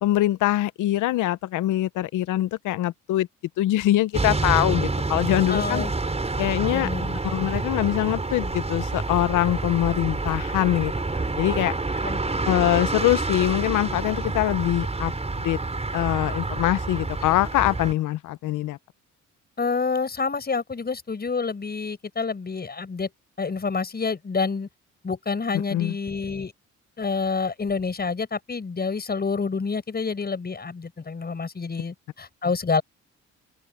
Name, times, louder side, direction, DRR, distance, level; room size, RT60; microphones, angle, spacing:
voice 1, 0.0-3.3 3.6-5.8 6.4-6.9 7.2-12.0 12.5-15.1 15.4-15.6 15.9-18.8 25.7-25.9, left 14 dB, 85° left, 0.9 m, -23 dB
sound 1, 4.1-17.9, right 3 dB, 20° right, 5.3 m, -28 dB
voice 2, 5.5-5.9 6.7-7.2 12.0-12.5 19.6-23.1 23.4-24.7 25.0-26.5 27.0-32.8, left 4 dB, 30° left, 6.7 m, -28 dB
open air
cardioid pair, 90°, 30 cm